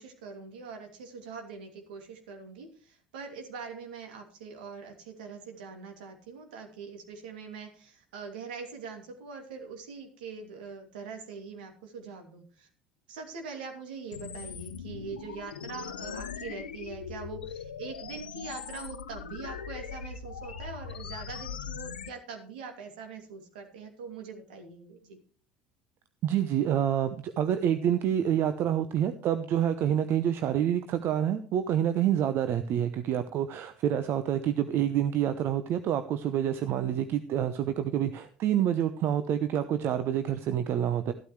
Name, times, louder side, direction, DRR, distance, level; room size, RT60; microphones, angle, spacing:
voice 1, 0.0-12.7 13.1-25.2, right 5 dB, 75° right, 4 dB, 2.7 m, -43 dB
sound 1, 14.1-22.1, left 7 dB, 85° left, 0.7 m, -40 dB
voice 2, 26.2-41.1, right 10 dB, 50° right, 10 dB, 0.9 m, -27 dB
13.5 x 12.5 x 3.2 m, 0.41 s
hypercardioid pair, 65°, 5 cm